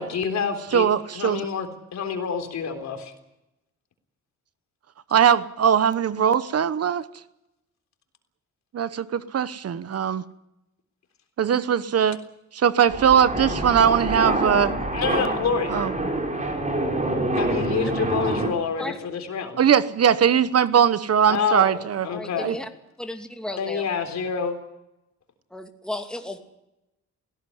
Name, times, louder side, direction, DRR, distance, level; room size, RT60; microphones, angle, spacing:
voice 1, 0.0-0.9 1.1-3.1 14.9-15.7 17.4-19.6 21.3-22.5 23.6-24.6, left 6 dB, 65° left, 6 dB, 3.7 m, -28 dB
voice 2, 0.7-1.5 5.1-7.0 8.7-10.2 11.4-12.2 12.5-14.7 15.7-15.9 19.6-22.1 22.4-22.5, right 8 dB, 55° right, 14 dB, 1.0 m, -20 dB
sound 1, 12.9-18.5, right 1 dB, 25° right, 5.1 m, -26 dB
voice 3, 22.1-22.7 23.0-23.9 25.5-26.4, left 1 dB, 5° left, 4 dB, 2.6 m, -34 dB
18.5 x 17.0 x 9.9 m, 0.88 s
cardioid pair, 100°, 30 cm